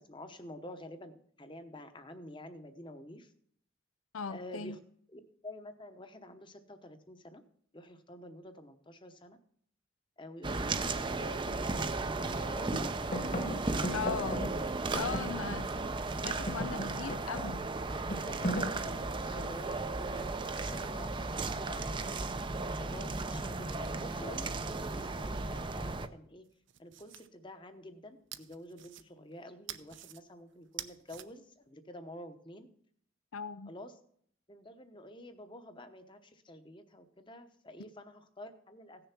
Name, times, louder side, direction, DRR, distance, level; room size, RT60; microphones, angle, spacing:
voice 1, 0.0-3.3 4.3-4.8 5.1-7.4 7.7-9.4 10.2-13.1 15.3-15.5 16.8-17.0 17.9-18.9 19.2-22.3 22.8-24.5 24.8-26.5 26.8-32.7 33.7-33.9 34.5-39.1, left 1 dB, 25° left, 0.9 m, -49 dB
voice 2, 4.1-4.8 13.9-14.5 14.9-15.7 16.2-17.7 33.3-33.7, left 6 dB, 90° left, 0.6 m, -38 dB
sound 1, 10.4-26.1, right 3 dB, 25° right, 0.5 m, -35 dB
sound 2, 12.7-15.9 16.1-19.8 20.7-21.2, equal, 40° left, 1.4 m, -39 dB
sound 3, 23.7-25.9 26.4-27.3 28.3-29.3 29.7-30.2 30.6-31.3, right 12 dB, 65° right, 0.7 m, -49 dB
16.0 x 6.8 x 5.9 m
head